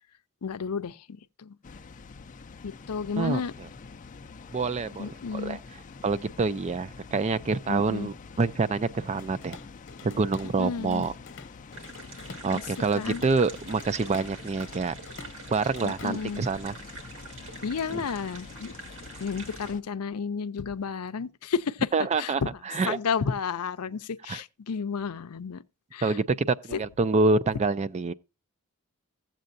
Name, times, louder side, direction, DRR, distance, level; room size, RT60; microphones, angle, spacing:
voice 1, 0.4-1.0 1.4-1.6 2.6-3.5 5.0-5.6 7.7-8.1 10.6-11.1 12.5-12.6 12.9-13.2 15.8-16.4 17.6-18.7 19.2-21.9 22.2-22.5 22.9-25.6 25.9-26.2 26.7-26.8, left 6 dB, 90° left, 0.6 m, -31 dB
Water, 1.6-19.8, left 4 dB, 35° left, 0.4 m, -46 dB
voice 2, 4.5-5.6 6.0-9.6 10.0-11.1 12.4-14.9 15.5-16.7 17.9-18.0 21.9-23.0 24.3-24.4 26.0-28.1, right 4 dB, 30° right, 0.4 m, -27 dB
Drum kit / Drum, 9.2-10.6 10.9-16.6, left 4 dB, 55° left, 1.0 m, -47 dB
sound 1, 11.7-19.7, right 4 dB, 60° right, 1.8 m, -45 dB
15.5 x 7.5 x 2.6 m
head